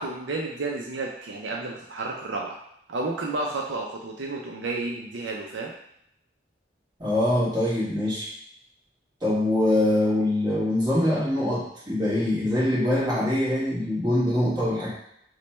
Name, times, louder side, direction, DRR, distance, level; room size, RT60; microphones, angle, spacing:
voice 1, 0.0-2.6 2.9-5.7, right 2 dB, 75° right, -1 dB, 0.5 m, -31 dB
voice 2, 7.0-8.3 9.2-14.9, left 1 dB, 20° right, -9 dB, 1.4 m, -23 dB
3.1 x 2.2 x 4.1 m, 0.73 s
head